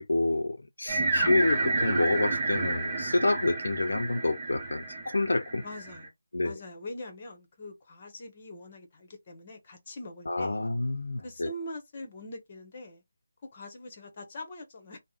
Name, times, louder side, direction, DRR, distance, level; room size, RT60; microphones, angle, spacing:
voice 1, 0.0-5.6 6.3-6.6 10.3-11.5, left 2 dB, 75° left, 0.5 m, -28 dB
voice 2, 0.9-1.3 5.6-6.1 6.4-10.6 11.2-13.0 13.4-15.0, left 1 dB, 30° left, 1.1 m, -43 dB
sound 1, 0.9-6.1, right 2 dB, 25° right, 0.9 m, -30 dB
3.4 x 2.1 x 2.5 m
figure-of-eight pair, 165°, 0 cm